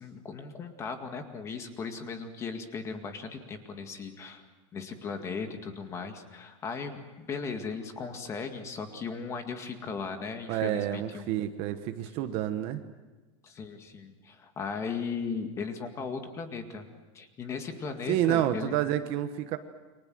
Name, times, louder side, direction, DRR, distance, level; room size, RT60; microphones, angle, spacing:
voice 1, 0.0-4.4 4.7-11.3 13.4-16.8 17.1-18.8, left 5 dB, 20° left, 6 dB, 2.1 m, -37 dB
voice 2, 10.5-12.8 18.1-19.6, right 12 dB, 35° right, 9 dB, 1.3 m, -29 dB
29.5 x 25.0 x 7.8 m, 1.2 s
supercardioid pair, 175°, 16 cm